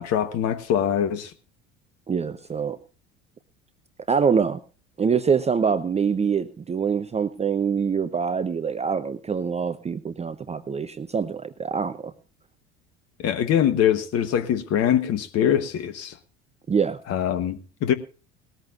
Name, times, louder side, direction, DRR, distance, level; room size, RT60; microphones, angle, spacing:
voice 1, 0.0-1.3 13.2-16.2 17.1-17.9, left 9 dB, 45° left, 1.3 m, -23 dB
voice 2, 2.1-2.8 4.1-4.6 5.0-12.1 16.7-17.0, right 6 dB, 20° right, 0.8 m, -24 dB
19.5 x 13.5 x 2.6 m
figure-of-eight pair, 65°, 35 cm